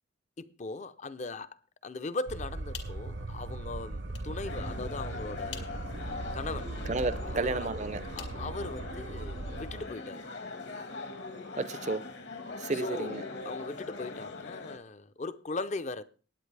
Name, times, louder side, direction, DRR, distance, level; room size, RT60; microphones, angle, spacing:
voice 1, 0.4-5.8 6.3-6.8 7.3-7.7 8.2-10.3 12.7-16.0, left 3 dB, 40° left, 0.6 m, -39 dB
sound 1, 2.3-9.9, right 2 dB, 70° right, 0.8 m, -39 dB
sound 2, 2.4-9.2, left 8 dB, 80° left, 2.1 m, -52 dB
sound 3, 4.4-14.8, left 3 dB, 60° left, 1.6 m, -41 dB
voice 2, 6.9-8.0 11.6-12.0 12.6-13.2, right 3 dB, 40° right, 0.5 m, -32 dB
19.0 x 8.6 x 3.3 m
head